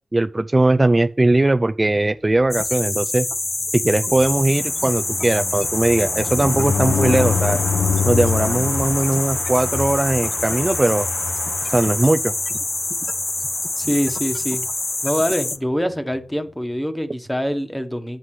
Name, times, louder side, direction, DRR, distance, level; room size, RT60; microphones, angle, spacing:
voice 1, 0.1-3.3 3.7-7.6 8.0-11.1 11.7-12.3, right 2 dB, 30° right, 0.3 m, -19 dB
sound 1, 2.5-15.6, left 2 dB, 35° left, 0.8 m, -26 dB
sound 2, 3.8-12.6 13.0-13.2 13.5-13.6 13.8-14.1, left 5 dB, 85° left, 1.0 m, -26 dB
voice 2, 13.8-14.6 15.0-18.2, equal, 10° left, 1.1 m, -24 dB
7.9 x 7.5 x 3.2 m
cardioid pair, 50°, 0 cm